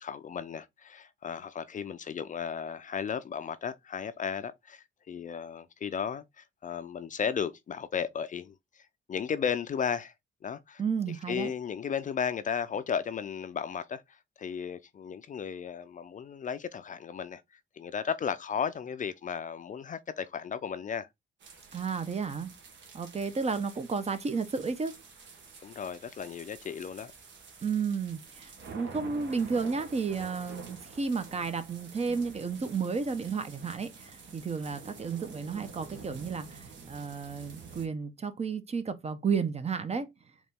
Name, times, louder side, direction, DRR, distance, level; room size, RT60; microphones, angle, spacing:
voice 1, 0.0-10.1 10.4-10.8 11.3-17.4 17.8-21.1 25.6-27.1, left 7 dB, 40° left, 0.5 m, -35 dB
voice 2, 10.8-11.5 21.7-22.5 22.9-24.9 27.6-40.1, right 5 dB, 30° right, 0.8 m, -32 dB
sound 1, 21.4-37.9, right 5 dB, 65° right, 1.4 m, -49 dB
4.1 x 3.0 x 3.5 m
cardioid pair, 90°, 20 cm